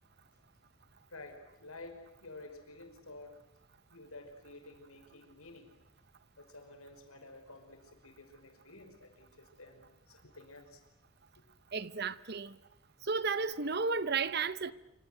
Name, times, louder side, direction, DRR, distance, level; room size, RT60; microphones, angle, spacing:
voice 1, 1.1-3.4 3.9-5.7 6.4-10.8, left 2 dB, 80° left, 5.6 m, -51 dB
voice 2, 11.7-12.5 13.0-14.7, right 4 dB, 45° right, 0.9 m, -33 dB
27.0 x 26.5 x 8.1 m
head